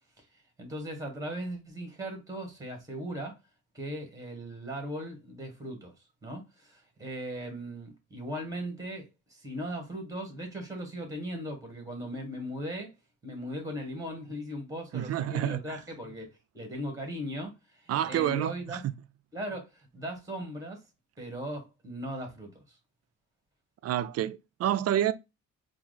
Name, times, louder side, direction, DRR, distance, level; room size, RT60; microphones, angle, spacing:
voice 1, 0.6-3.4 3.7-5.9 6.2-12.9 13.2-18.8 19.3-20.8 21.2-22.8, equal, 10° right, 1.8 m, -38 dB
voice 2, 14.9-15.8 17.9-18.9 23.8-25.1, right 12 dB, 55° right, 0.4 m, -29 dB
4.5 x 2.1 x 4.0 m
cardioid pair, 110°, 29 cm